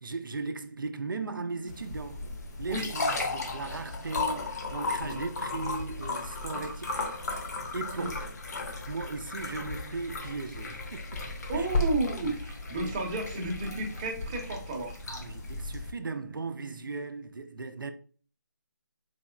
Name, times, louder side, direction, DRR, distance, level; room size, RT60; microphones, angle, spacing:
voice 1, 0.0-2.3 2.6-6.9 7.3-8.2 8.9-11.3 11.5-11.7 12.8-12.9 13.3-13.5 15.1-17.9, right 3 dB, 85° right, 0.6 m, -37 dB
sound 1, 1.7-15.9, left 3 dB, 55° left, 0.8 m, -35 dB
voice 2, 11.5-15.0, right 2 dB, 25° right, 0.8 m, -32 dB
4.1 x 3.0 x 2.3 m
figure-of-eight pair, 155°, 11 cm